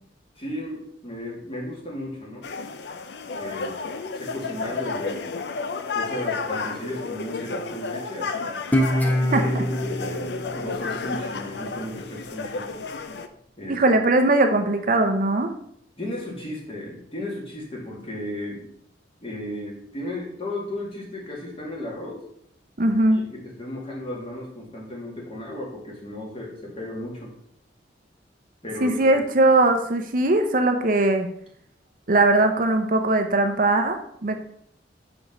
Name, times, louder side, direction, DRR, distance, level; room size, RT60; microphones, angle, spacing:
voice 1, 0.4-2.5 3.3-3.8 4.1-5.2 5.9-8.7 9.3-12.7 13.6-13.8 16.0-18.7 19.2-22.2 23.2-27.3 28.6-29.0, left 1 dB, 30° left, -2 dB, 2.2 m, -35 dB
sound 1, 2.4-13.3, left 4 dB, 65° left, 0.6 m, -32 dB
Guitar, 8.7-11.9, equal, 10° left, 0.7 m, -25 dB
voice 2, 9.3-9.6 13.7-15.5 22.8-23.2 28.8-31.3 32.1-34.4, right 2 dB, 50° right, 6 dB, 0.6 m, -20 dB
6.1 x 4.9 x 5.3 m, 0.68 s
head